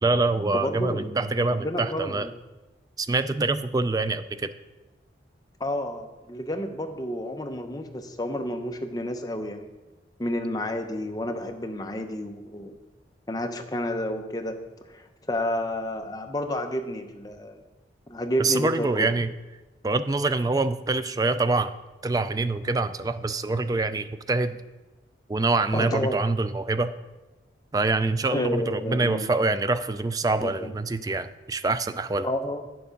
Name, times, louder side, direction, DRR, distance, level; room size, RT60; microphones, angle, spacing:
voice 1, 0.0-2.3 3.0-4.5 18.4-19.3 19.8-21.7 22.0-24.5 25.3-26.9 27.7-32.3, right 3 dB, 20° right, 12 dB, 0.3 m, -25 dB
voice 2, 0.5-1.1 1.5-2.3 5.6-9.7 10.2-12.8 13.3-14.6 14.9-17.6 18.1-19.1 25.7-26.2 28.3-29.3 30.4-30.7 32.2-32.6, left 1 dB, 20° left, 5 dB, 0.7 m, -30 dB
9.5 x 6.8 x 5.1 m, 1.1 s
head